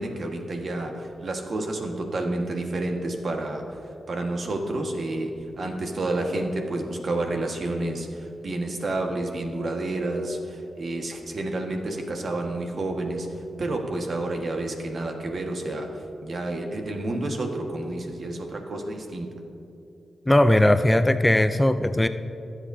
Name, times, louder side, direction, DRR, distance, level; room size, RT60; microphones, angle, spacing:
voice 1, 0.0-3.7 4.1-13.3 13.6-19.3, right 2 dB, 60° right, 2 dB, 1.5 m, -30 dB
voice 2, 20.3-22.1, left 1 dB, 15° left, 11 dB, 0.4 m, -19 dB
21.5 x 8.1 x 2.7 m, 2.8 s
cardioid pair, 60°, 0 cm